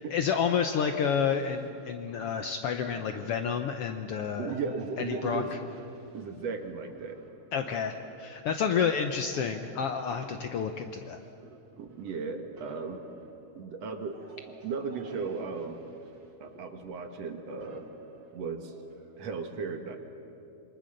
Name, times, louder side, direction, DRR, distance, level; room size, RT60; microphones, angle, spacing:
voice 1, 0.1-4.6 5.1-5.4 7.5-11.2, left 7 dB, 70° left, 6 dB, 1.5 m, -29 dB
sound 1, 1.0-19.3, right 3 dB, 40° right, 1.5 m, -53 dB
voice 2, 4.3-5.6 6.1-7.2 11.8-13.0 13.5-14.3 14.6-15.8 16.4-17.9 18.3-18.7 19.2-20.0, right 5 dB, 60° right, 6 dB, 2.4 m, -36 dB
26.5 x 24.0 x 6.6 m, 2.7 s
omnidirectional pair, 3.4 m